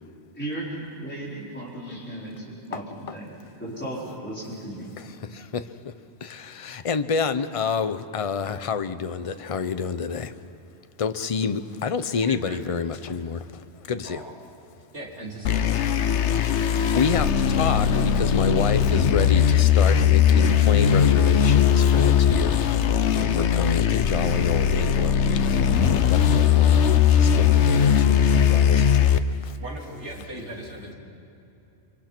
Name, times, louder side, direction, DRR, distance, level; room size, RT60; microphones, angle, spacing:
voice 1, 0.3-3.3 3.6-4.9, right 1 dB, 10° left, -8 dB, 4.8 m, -35 dB
voice 2, 5.0-5.9 6.2-10.3 11.0-14.2 16.8-26.9 27.2-28.9 29.4-29.6, left 5 dB, 35° left, 10 dB, 0.8 m, -29 dB
voice 3, 12.3-12.6 14.0-14.3 14.9-15.9 29.6-30.9, right 1 dB, 75° right, -2 dB, 3.8 m, -38 dB
sound 1, 15.4-29.2, left 8 dB, 80° left, 1.1 m, -19 dB
28.5 x 24.5 x 6.1 m, 2.9 s
omnidirectional pair, 1.2 m